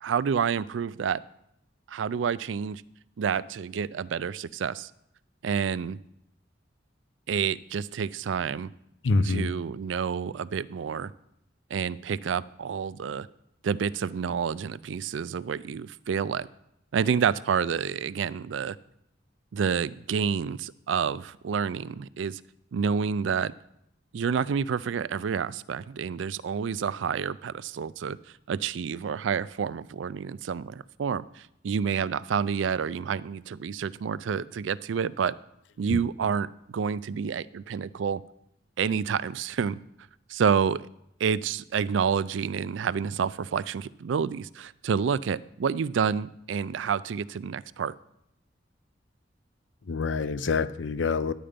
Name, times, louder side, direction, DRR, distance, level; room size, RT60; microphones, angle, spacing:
voice 1, 0.0-1.2 1.9-2.8 3.2-4.9 5.4-6.0 7.3-8.7 9.2-11.1 11.7-13.3 13.6-16.5 16.9-18.8 19.5-22.4 22.7-23.5 24.1-28.2 28.5-35.3 35.8-38.2 38.8-39.8 40.3-40.9 41.2-48.0, right 6 dB, 80° right, 18 dB, 0.4 m, -29 dB
voice 2, 9.0-9.5 35.9-36.0 49.9-51.3, left 4 dB, 70° left, 14 dB, 0.6 m, -26 dB
11.0 x 8.8 x 5.1 m, 0.79 s
head